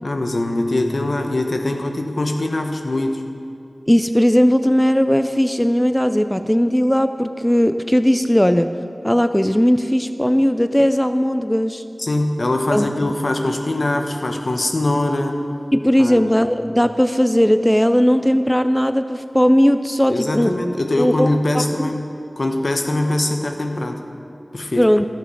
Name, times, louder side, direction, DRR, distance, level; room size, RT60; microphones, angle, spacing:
voice 1, 0.0-3.2 12.0-15.4 16.0-16.3 20.1-22.0 22.4-24.0 24.5-24.9, left 1 dB, 70° left, 4 dB, 1.1 m, -22 dB
voice 2, 3.9-8.7 9.0-11.8 12.7-13.1 15.7-20.6 21.0-21.3 21.8-21.9 24.8-25.0, equal, 10° left, 10 dB, 0.4 m, -17 dB
14.5 x 6.9 x 6.3 m, 2.5 s
wide cardioid pair, 45°, 0 cm